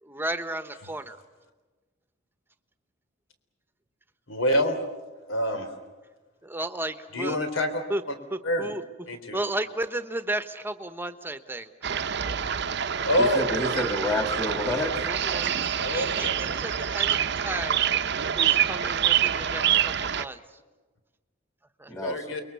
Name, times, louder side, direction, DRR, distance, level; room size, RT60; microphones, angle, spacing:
voice 1, 0.0-1.2 6.4-7.4 7.9-8.0 8.3-8.8 9.3-11.7 13.7-13.8 15.0-17.9 18.3-20.6 21.8-21.9, right 1 dB, 10° right, 10 dB, 1.1 m, -34 dB
voice 2, 4.3-4.8 5.3-5.7 7.1-7.8 8.1-8.2 8.4-8.7 9.1-9.4 13.0-13.5 15.8-16.3 22.0-22.4, left 1 dB, 85° left, 7 dB, 3.7 m, -26 dB
sound 1, 11.8-20.2, right 9 dB, 60° right, 0.8 m, -26 dB
voice 3, 13.2-15.0 21.9-22.2, left 1 dB, 15° left, 5 dB, 2.6 m, -28 dB
29.5 x 22.0 x 7.0 m, 1.3 s
head